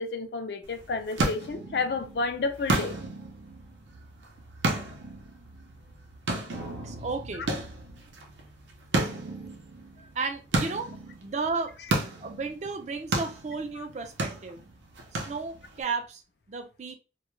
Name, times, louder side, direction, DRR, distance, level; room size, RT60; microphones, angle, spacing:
voice 1, 0.0-2.9 13.8-13.9, left 3 dB, 60° left, 0.4 m, -31 dB
sound 1, 0.6-15.8, right 2 dB, 85° right, 0.6 m, -33 dB
voice 2, 6.8-7.5 10.0-10.9 11.2-11.7 12.2-14.6 15.1-16.2 16.5-17.0, right 4 dB, 40° right, 0.4 m, -33 dB
2.2 x 2.2 x 3.0 m
head